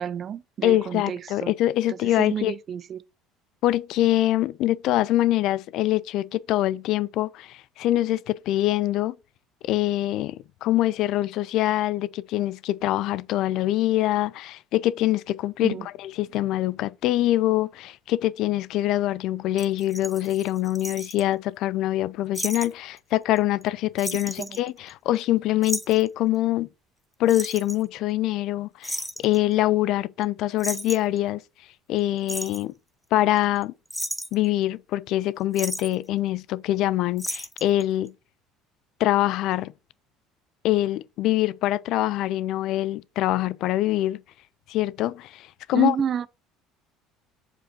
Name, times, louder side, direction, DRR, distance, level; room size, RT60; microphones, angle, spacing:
voice 1, 0.0-1.5 1.9-3.0 15.6-15.9 24.4-24.6 45.7-46.3, right 8 dB, 40° right, 0.4 m, -30 dB
voice 2, 0.6-2.5 3.6-9.1 9.6-26.7 27.2-31.4 31.9-32.7 33.1-33.7 34.3-38.1 39.0-39.7 40.6-44.2 44.7-46.0, left 14 dB, 55° left, 0.3 m, -24 dB
sound 1, 19.6-21.2 22.3-22.7 23.0-23.1 23.4-23.7 24.0-25.2 25.6-26.1 27.3-27.8 28.8-29.4 30.2-30.3 30.6-31.2 32.0-32.6 33.4-33.6 33.9-34.5 35.5-35.9 37.2-37.8 38.1-38.2, equal, ahead, 0.7 m, -33 dB
7.6 x 4.9 x 2.9 m
figure-of-eight pair, 60°, 0 cm